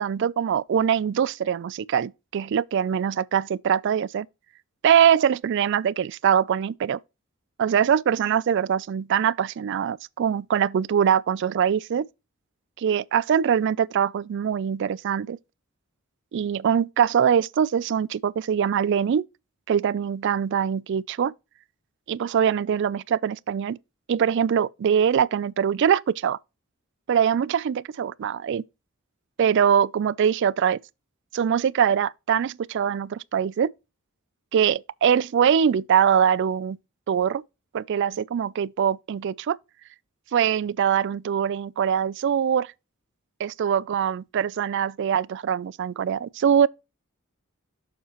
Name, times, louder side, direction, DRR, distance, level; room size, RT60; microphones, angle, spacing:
voice 1, 0.0-4.3 4.8-7.0 7.6-12.1 12.8-15.4 16.3-19.2 19.7-21.3 22.1-23.8 24.1-26.4 27.1-28.6 29.4-30.8 31.3-33.7 34.5-36.8 37.1-37.4 37.7-39.6 40.3-42.7 43.4-46.7, right 8 dB, 60° right, 0.3 m, -23 dB
6.8 x 6.7 x 3.0 m
head